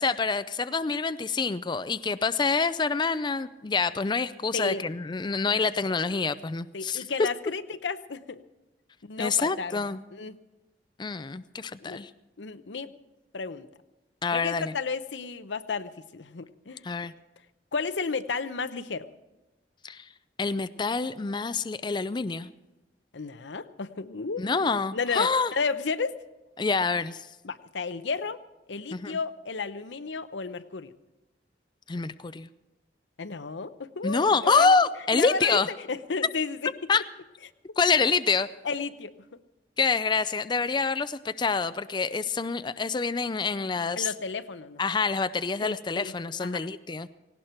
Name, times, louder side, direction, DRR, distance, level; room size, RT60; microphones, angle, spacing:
voice 1, 0.0-7.3 9.2-10.0 11.0-12.1 14.2-14.7 16.8-17.1 19.8-20.1 20.4-22.5 24.4-25.5 26.6-27.3 28.9-29.2 31.9-32.5 34.0-35.7 36.9-37.0 37.8-38.5 39.8-44.1 44.8-47.1, left 4 dB, 25° left, 13 dB, 0.4 m, -26 dB
voice 2, 4.5-4.8 6.7-8.4 9.0-9.8 10.1-10.4 11.8-12.0 12.4-13.0 13.3-13.7 14.3-16.8 17.7-19.1 23.1-24.6 24.9-26.2 27.4-28.4 28.7-30.9 33.2-34.7 35.1-35.6 35.9-36.7 38.6-39.1 44.0-44.8 45.6-46.1 46.4-46.7, left 4 dB, 90° left, 12 dB, 0.8 m, -33 dB
18.0 x 17.5 x 4.4 m, 1.1 s
head